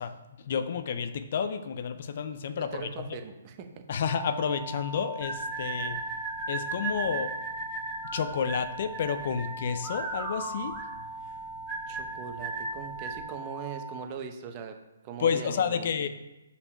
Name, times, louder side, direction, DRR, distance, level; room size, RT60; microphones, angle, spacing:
voice 1, 0.0-3.2 3.9-6.0 6.5-7.3 8.1-10.8 15.2-16.1, left 7 dB, 50° left, 10 dB, 0.5 m, -30 dB
voice 2, 2.6-3.8 11.9-14.8 15.0-16.1, right 7 dB, 30° right, 5 dB, 0.8 m, -41 dB
sound 1, 4.0-14.1, right 3 dB, ahead, 0.3 m, -41 dB
sound 2, 5.2-13.2, right 3 dB, 15° right, 1.6 m, -36 dB
5.4 x 4.8 x 5.5 m, 1.0 s
hypercardioid pair, 145°, 0 cm